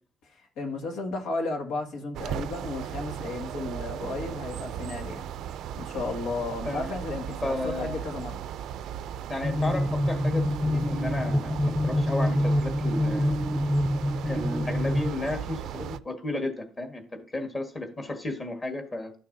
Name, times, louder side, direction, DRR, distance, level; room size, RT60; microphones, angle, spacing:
voice 1, 0.6-5.2 5.8-8.4, left 3 dB, 85° left, 1.9 m, -33 dB
sound 1, 2.1-16.0, right 9 dB, 75° right, 0.4 m, -37 dB
voice 2, 6.6-7.0 7.3-8.0 9.3-13.3 14.2-19.1, left 2 dB, 30° left, 1.6 m, -33 dB
sound 2, 9.4-15.1, left 1 dB, 5° right, 0.4 m, -26 dB
12.0 x 6.6 x 2.7 m
cardioid pair, 130°, 0 cm